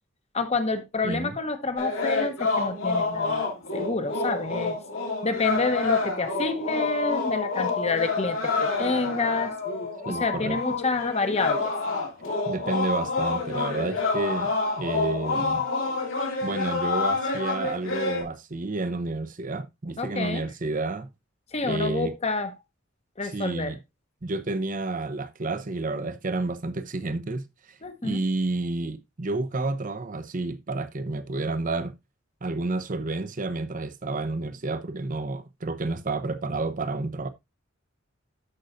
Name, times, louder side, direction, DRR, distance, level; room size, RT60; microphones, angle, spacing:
voice 1, 0.3-3.5 3.7-4.8 5.2-9.6 10.1-11.7 20.0-20.5 21.5-22.5 23.2-23.7 27.8-28.2, left 3 dB, 30° left, 1.0 m, -28 dB
sound 1, 1.8-18.2, left 3 dB, 85° left, 2.8 m, -28 dB
voice 2, 10.1-10.6 12.5-15.7 16.4-21.1 21.6-22.1 23.2-23.8 24.2-31.9 32.4-37.3, right 2 dB, 40° right, 0.7 m, -30 dB
13.0 x 5.5 x 2.5 m
head